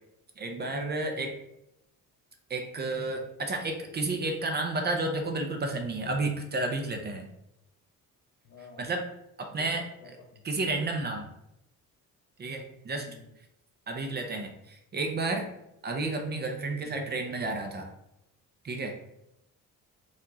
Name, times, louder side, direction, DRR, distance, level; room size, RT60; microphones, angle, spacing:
voice 1, 0.4-1.4 2.5-7.3 8.8-9.1 9.4-9.9 10.4-11.3 12.4-13.1 13.9-15.5 15.8-17.9 18.6-18.9, right 2 dB, 30° right, 3 dB, 0.6 m, -31 dB
voice 2, 8.4-8.9 9.5-9.7 10.0-10.4 12.9-13.2 16.6-17.0, left 4 dB, 55° left, 2 dB, 1.1 m, -50 dB
4.5 x 2.5 x 4.0 m, 0.83 s
cardioid pair, 125°, 32 cm